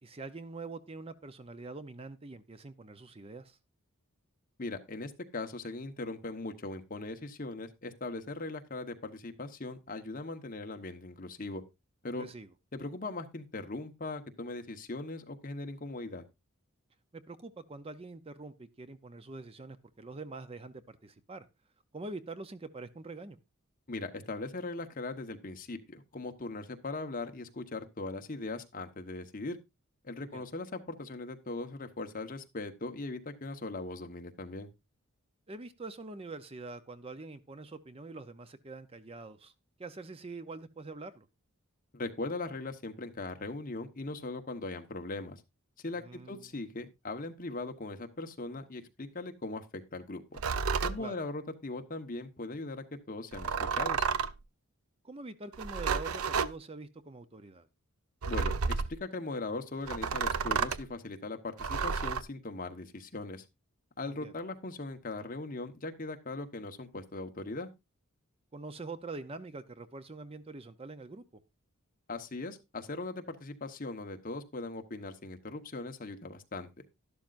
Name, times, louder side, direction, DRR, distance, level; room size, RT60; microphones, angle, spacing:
voice 1, 0.0-3.6 12.2-12.5 17.1-21.5 21.9-23.4 30.2-30.4 35.5-39.5 39.8-41.3 46.0-46.5 51.0-51.2 55.0-57.7 64.0-64.3 68.5-71.4, right 3 dB, 25° right, 0.6 m, -45 dB
voice 2, 4.6-11.6 12.0-12.3 12.7-16.2 23.9-29.6 30.0-34.7 41.9-45.4 45.8-50.4 50.8-54.1 58.3-63.4 64.0-67.7 72.1-76.7, left 2 dB, 40° left, 1.1 m, -39 dB
sound 1, 50.3-51.0 53.3-54.4 55.5-56.5 58.2-59.0 59.9-60.8 61.6-62.2, right 5 dB, 80° right, 0.6 m, -31 dB
12.0 x 12.0 x 2.5 m
head